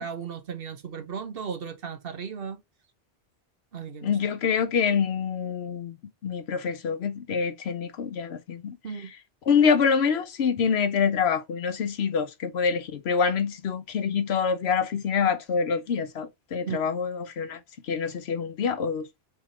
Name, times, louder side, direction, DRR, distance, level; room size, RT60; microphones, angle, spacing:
voice 1, 0.0-2.6 3.7-4.2 8.8-9.1 16.7-16.8, right 6 dB, 65° right, 1.1 m, -35 dB
voice 2, 4.0-6.0 6.2-8.8 9.5-17.6 17.9-19.1, left 6 dB, 90° left, 1.0 m, -26 dB
4.4 x 3.6 x 3.0 m
omnidirectional pair, 1.0 m